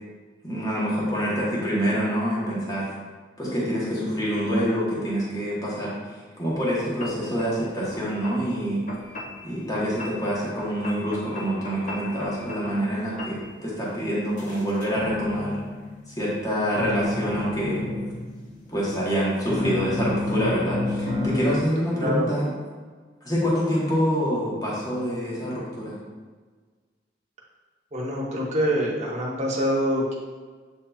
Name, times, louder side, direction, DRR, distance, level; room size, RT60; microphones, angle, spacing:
voice 1, 0.4-2.9 3.4-5.9 6.4-8.9 9.4-15.6 16.1-17.9 18.7-22.5 23.2-25.9, equal, 20° left, -7 dB, 1.0 m, -26 dB
sound 1, 6.5-6.6 7.0-7.5 7.9-8.4 8.9-9.4 9.7-10.3 10.6-12.9 13.2-13.5 14.4-16.5 16.7-18.9 19.5-21.7, left 2 dB, 40° left, 0.6 m, -31 dB
voice 2, 27.9-30.2, equal, 40° right, -3 dB, 0.9 m, -25 dB
7.6 x 2.8 x 2.3 m, 1.5 s
head